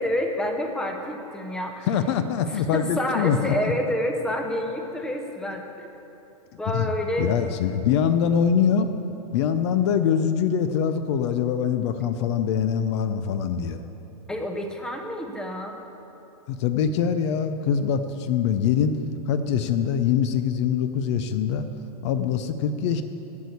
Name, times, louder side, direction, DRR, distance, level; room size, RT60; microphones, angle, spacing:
voice 1, 0.0-1.9 2.5-5.9 6.6-7.3 14.3-15.8, left 1 dB, 5° left, 3 dB, 0.7 m, -28 dB
voice 2, 1.9-3.5 6.7-6.9 7.2-8.9 9.3-13.8 16.5-18.9 19.3-21.7 22.0-23.0, left 7 dB, 50° left, 10 dB, 0.5 m, -23 dB
8.4 x 6.6 x 8.3 m, 3.0 s
hypercardioid pair, 140°, 19 cm